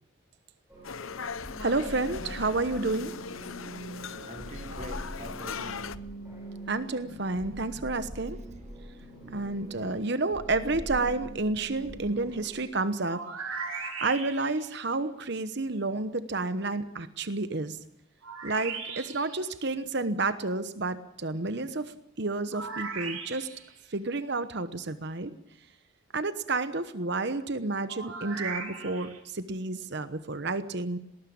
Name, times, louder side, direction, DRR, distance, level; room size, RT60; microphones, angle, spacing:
sound 1, 0.7-12.6, right 1 dB, 10° right, 7.8 m, -43 dB
sound 2, 0.8-6.0, left 6 dB, 75° left, 0.9 m, -39 dB
voice 1, 1.6-3.1 6.7-8.4 9.3-13.2 14.0-17.8 18.4-23.5 23.9-25.3 26.1-31.0, right 3 dB, 55° right, 1.1 m, -30 dB
voice 2, 4.2-6.2 9.6-9.9, right 1 dB, 35° right, 1.2 m, -45 dB
sound 3, 13.0-14.7 18.2-19.4 22.5-23.7 27.9-29.2, right 5 dB, 85° right, 3.9 m, -38 dB
19.5 x 19.0 x 8.8 m
head